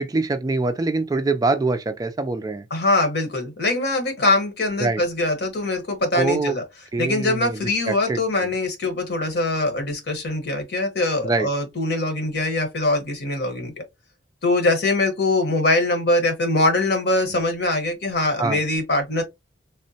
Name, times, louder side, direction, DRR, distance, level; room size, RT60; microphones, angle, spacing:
voice 1, 0.0-2.6 4.8-5.0 6.1-6.6 6.9-8.5 11.2-11.5 18.4-18.6, right 3 dB, 20° right, 0.3 m, -24 dB
voice 2, 2.7-6.6 7.0-13.8 14.4-19.2, left 2 dB, 60° left, 1.0 m, -22 dB
3.6 x 2.1 x 2.7 m
head